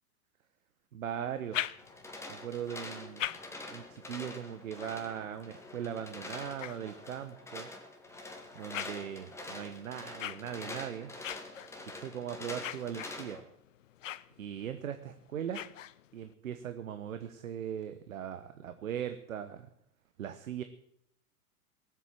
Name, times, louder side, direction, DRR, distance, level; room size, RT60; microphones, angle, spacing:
voice 1, 0.9-1.6 2.3-3.4 3.7-7.7 8.5-11.1 11.9-13.5 14.4-15.7 16.1-19.7 20.2-20.6, right 9 dB, 60° right, 10 dB, 1.1 m, -39 dB
sound 1, 1.3-2.3 2.9-7.5 8.1-16.3, left 12 dB, 55° left, 0.7 m, -44 dB
sound 2, 1.8-13.4, left 2 dB, 5° left, 2.1 m, -46 dB
18.5 x 8.2 x 7.7 m, 0.75 s
figure-of-eight pair, 100°, 45 cm